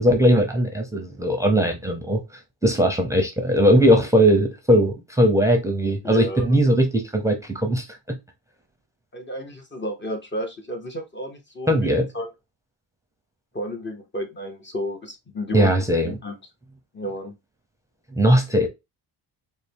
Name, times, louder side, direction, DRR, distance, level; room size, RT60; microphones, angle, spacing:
voice 1, 0.0-8.2 11.7-12.1 15.5-16.2 18.1-18.7, equal, 5° right, 0.7 m, -19 dB
voice 2, 6.0-6.5 9.1-12.3 13.5-15.7 16.0-16.4 16.9-17.3, equal, 25° left, 0.8 m, -32 dB
4.0 x 2.1 x 3.4 m
cardioid pair, 90°, 44 cm